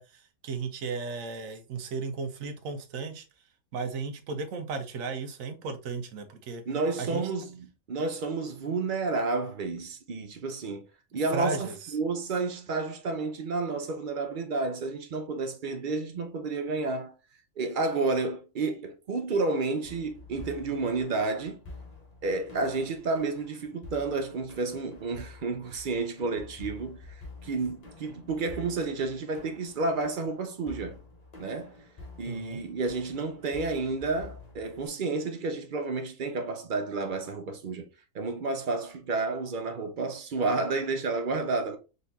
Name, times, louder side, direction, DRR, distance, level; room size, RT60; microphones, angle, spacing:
voice 1, 0.0-3.2 3.7-6.6 7.0-7.2 11.3-11.9 32.3-32.6, right 4 dB, 85° right, 1.2 m, -35 dB
voice 2, 6.7-10.8 11.1-17.1 17.6-21.6 22.2-27.0 27.4-31.0 31.4-31.8 32.2-37.9 38.1-41.8, right 3 dB, 50° right, 0.6 m, -31 dB
sound 1, 19.8-34.9, left 2 dB, 35° left, 0.8 m, -48 dB
4.0 x 3.3 x 2.7 m
omnidirectional pair, 1.4 m